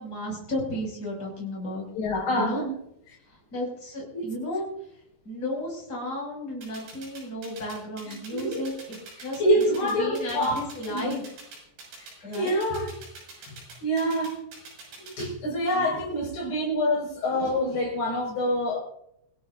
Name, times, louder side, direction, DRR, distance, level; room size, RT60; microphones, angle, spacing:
voice 1, 0.0-1.8 2.3-2.6 3.3-4.6 5.2-11.2 12.2-12.6 15.7-15.9, left 1 dB, 20° left, -3 dB, 6.9 m, -34 dB
voice 2, 2.0-2.7 3.1-3.2 4.1-4.3 8.0-8.7 9.2-11.1 12.2-12.9 13.4-14.4 15.0-18.8, equal, 45° left, -3 dB, 7.1 m, -27 dB
sound 1, 6.6-15.3, right 3 dB, 65° right, 8.8 m, -44 dB
25.5 x 17.0 x 2.7 m, 0.78 s
omnidirectional pair, 5.8 m